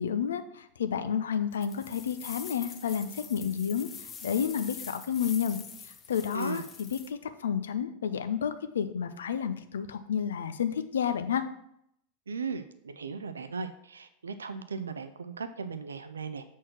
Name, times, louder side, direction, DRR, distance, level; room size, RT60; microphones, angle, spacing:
voice 1, 0.0-5.6 5.8-11.5, left 8 dB, 65° left, 10 dB, 0.6 m, -31 dB
sound 1, 1.5-7.1, left 6 dB, 25° left, 0.8 m, -45 dB
voice 2, 12.3-16.4, right 4 dB, 75° right, 10 dB, 0.5 m, -37 dB
7.3 x 4.5 x 5.9 m, 0.75 s
figure-of-eight pair, 90°, 0 cm